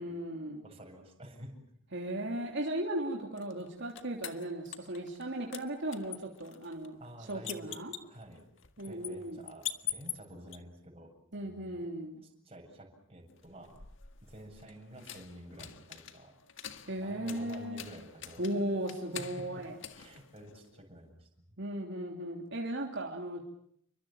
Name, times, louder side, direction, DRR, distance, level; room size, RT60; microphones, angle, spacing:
voice 1, 0.0-0.6 1.9-7.0 7.3-7.9 8.8-9.4 11.3-12.2 16.9-17.8 18.4-19.7 21.6-23.4, right 1 dB, 65° right, 1 dB, 3.3 m, -36 dB
voice 2, 0.6-1.6 2.3-2.5 7.0-7.8 8.0-8.4 8.8-11.9 12.2-13.8 14.2-16.3 17.0-18.4 18.7-18.9 19.2-19.6 19.9-21.3, right 1 dB, 30° right, 2 dB, 7.9 m, -50 dB
sound 1, 3.4-5.3 5.5-10.6 13.4-20.9, left 10 dB, 70° left, 1.8 m, -45 dB
29.5 x 24.5 x 7.3 m, 0.68 s
head